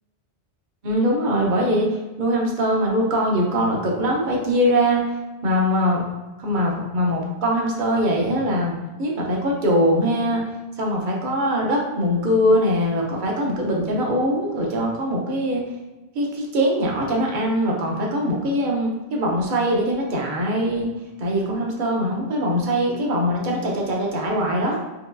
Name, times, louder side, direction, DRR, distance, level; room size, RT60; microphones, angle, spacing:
voice 1, 0.8-1.9 2.2-5.0 5.4-6.0 6.4-10.4 10.8-15.6 16.1-20.9 21.2-24.8, equal, 45° right, -1 dB, 0.9 m, -22 dB
4.6 x 2.9 x 2.6 m, 1.1 s
omnidirectional pair, 1.2 m